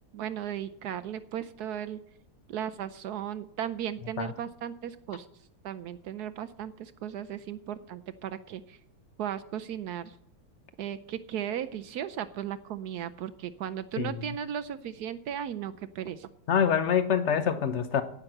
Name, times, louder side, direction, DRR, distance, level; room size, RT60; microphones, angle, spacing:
voice 1, 0.1-2.0 2.5-5.3 5.6-8.8 9.2-10.1 10.8-16.3, right 9 dB, 70° right, 11 dB, 0.9 m, -36 dB
voice 2, 16.5-18.0, left 7 dB, 75° left, 10 dB, 0.6 m, -25 dB
17.0 x 5.9 x 7.8 m, 0.70 s
omnidirectional pair, 2.2 m